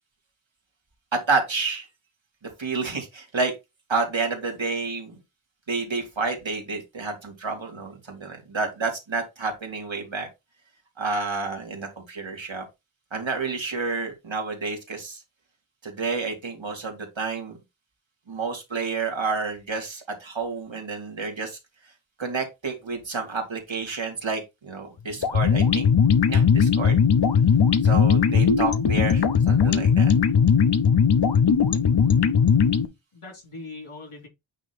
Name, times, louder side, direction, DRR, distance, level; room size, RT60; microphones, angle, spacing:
voice 1, 1.1-1.9 2.6-3.5 3.9-5.1 5.7-10.3 11.0-12.6 13.1-15.2 15.8-17.6 18.3-21.6 22.2-25.9 26.3-27.0 27.8-30.1, right 4 dB, 65° right, 2.3 m, -29 dB
sound 1, 25.2-32.9, left 6 dB, 55° left, 0.8 m, -19 dB
voice 2, 33.1-34.3, left 3 dB, 90° left, 3.0 m, -41 dB
8.9 x 3.0 x 4.2 m
wide cardioid pair, 60°, 49 cm